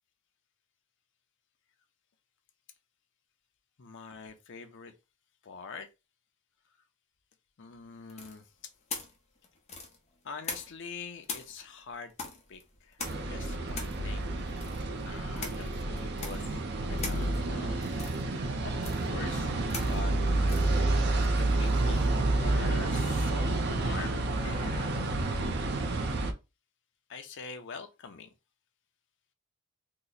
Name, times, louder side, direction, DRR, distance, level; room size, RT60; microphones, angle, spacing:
voice 1, 3.8-4.9 5.4-5.9 7.6-8.7 10.2-12.1 12.5-13.0 13.3-14.3 15.1-16.5 16.9-17.9 18.6-19.5 19.9-20.1 21.3-25.6 27.1-28.3, left 5 dB, 55° left, 0.6 m, -44 dB
sound 1, 8.1-10.9 11.2-22.2, left 4 dB, 30° left, 0.8 m, -43 dB
sound 2, 13.0-26.3, right 2 dB, 50° right, 0.5 m, -29 dB
2.9 x 2.1 x 3.9 m
head